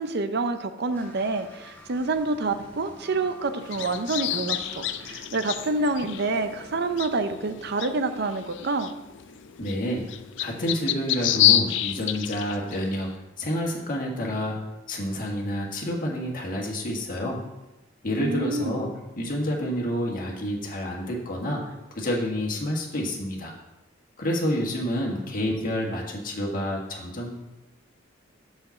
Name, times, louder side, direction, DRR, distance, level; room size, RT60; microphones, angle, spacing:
voice 1, 0.0-8.9 18.2-18.8, right 3 dB, 55° right, 9 dB, 0.6 m, -27 dB
sound 1, 0.9-7.0, left 1 dB, 10° left, 1.6 m, -49 dB
sound 2, 3.6-13.1, left 11 dB, 65° left, 0.4 m, -29 dB
voice 2, 9.6-10.0 10.4-13.1 13.4-14.6 14.9-17.4 18.0-23.5 24.2-27.3, equal, 45° left, -1 dB, 1.7 m, -29 dB
5.8 x 5.6 x 7.0 m, 0.98 s
head